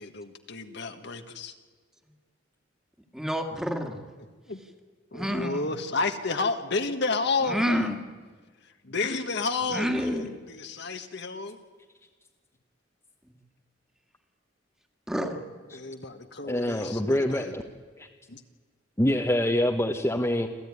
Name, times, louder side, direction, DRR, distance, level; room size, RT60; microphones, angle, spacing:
voice 1, 0.0-1.5 4.5-4.6 5.1-7.9 8.6-11.6 15.7-17.5 18.3-18.4, left 3 dB, 65° left, 7 dB, 1.5 m, -31 dB
voice 2, 3.1-4.0 5.1-5.6 7.5-8.0 9.7-10.4 15.1-15.4, equal, 5° right, 5 dB, 2.0 m, -28 dB
voice 3, 16.5-17.6 18.0-18.1 19.0-20.5, left 1 dB, 15° left, 2 dB, 1.1 m, -25 dB
27.5 x 14.5 x 9.7 m, 1.4 s
head